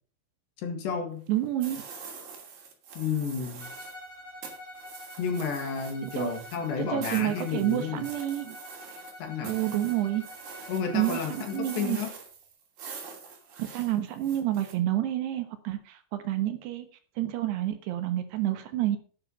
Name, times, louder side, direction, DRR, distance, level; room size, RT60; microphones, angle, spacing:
voice 1, 0.6-1.2 3.0-3.7 5.2-8.1 9.2-9.6 10.7-12.1, left 6 dB, 65° left, 5 dB, 3.8 m, -31 dB
voice 2, 1.3-1.8 6.0-6.3 6.8-8.6 9.4-10.3 10.9-12.0 13.6-16.9 17.2-19.0, right 13 dB, 70° right, 8 dB, 2.7 m, -29 dB
sound 1, 1.6-4.0 4.4-14.7, right 5 dB, 50° right, 4.0 m, -44 dB
Bowed string instrument, 3.6-11.9, left 1 dB, 10° left, 5.0 m, -46 dB
10.5 x 10.0 x 5.6 m, 0.41 s
omnidirectional pair, 6.0 m